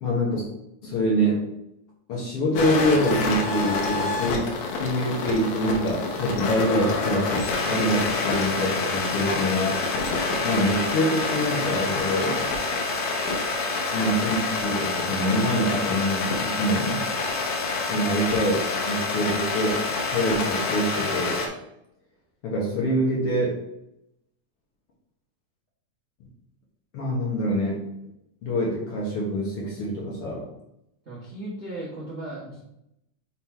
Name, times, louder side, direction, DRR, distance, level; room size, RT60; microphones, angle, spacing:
voice 1, 0.0-0.5 0.8-1.4 2.1-4.5 4.8-9.8 10.4-12.4 13.9-17.0 17.9-18.6 18.9-21.5 22.4-23.6 26.9-27.9 28.4-30.5, equal, 55° left, -2 dB, 1.8 m, -25 dB
sound 1, 2.6-21.5, left 3 dB, 80° left, 2.5 m, -27 dB
voice 2, 31.0-32.6, right 1 dB, 40° right, -7 dB, 0.9 m, -36 dB
5.8 x 4.0 x 4.6 m, 0.82 s
omnidirectional pair, 3.6 m